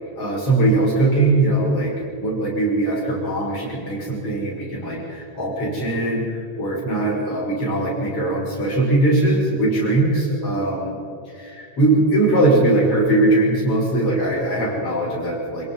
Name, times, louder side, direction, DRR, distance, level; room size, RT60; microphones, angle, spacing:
voice 1, 0.2-11.0 11.3-15.7, right 2 dB, 50° left, -4 dB, 7.2 m, -20 dB
27.0 x 17.5 x 5.5 m, 2.5 s
omnidirectional pair, 3.3 m